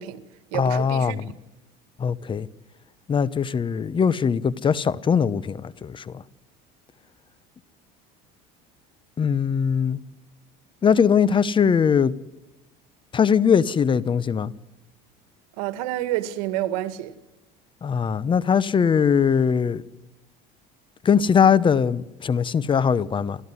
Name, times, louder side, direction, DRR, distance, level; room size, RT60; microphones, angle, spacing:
voice 1, 0.0-1.4 15.6-17.1, right 14 dB, 90° right, 2.0 m, -29 dB
voice 2, 0.5-1.3 2.0-2.5 3.1-6.2 9.2-10.0 10.8-12.1 13.1-14.5 17.8-19.8 21.0-23.4, left 7 dB, 25° left, 1.0 m, -21 dB
30.0 x 14.0 x 9.8 m
cardioid pair, 125°, 19 cm